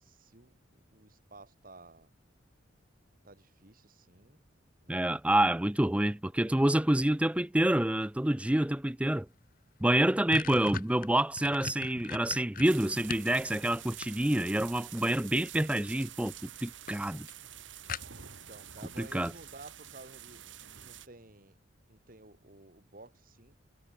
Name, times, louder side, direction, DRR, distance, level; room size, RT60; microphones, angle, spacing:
voice 1, 0.0-2.1 3.2-4.4 4.8-5.1 6.4-6.8 18.3-20.4 20.8-21.6 21.9-23.5, right 2 dB, 50° right, 2.8 m, -53 dB
voice 2, 4.9-9.3 9.8-17.3 19.0-19.3, right 1 dB, 5° right, 0.5 m, -27 dB
sound 1, 9.4-9.5 9.8-13.3 13.7-14.6 15.7-16.1 16.4-16.5 16.9-17.0 17.3-17.4 17.9-18.4, left 5 dB, 45° left, 1.0 m, -40 dB
sound 2, 12.6-21.1, right 10 dB, 80° right, 2.3 m, -48 dB
head